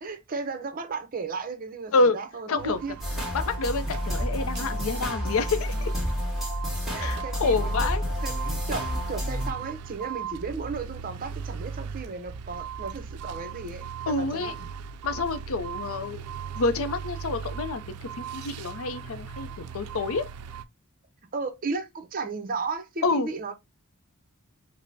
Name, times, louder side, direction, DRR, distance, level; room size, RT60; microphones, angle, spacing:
voice 1, 0.0-2.9 6.9-7.9 8.2-14.7 21.3-23.5, right 4 dB, 40° right, 0.6 m, -35 dB
voice 2, 2.5-2.8 3.3-5.9 7.0-8.0 14.1-14.5 15.0-16.2 16.5-19.5 19.7-20.3 23.0-23.3, left 3 dB, 65° left, 0.5 m, -27 dB
sound 1, 2.6-20.6, right 7 dB, 90° right, 0.4 m, -39 dB
sound 2, 3.0-9.5, equal, ahead, 1.3 m, -30 dB
5.2 x 2.0 x 2.6 m
head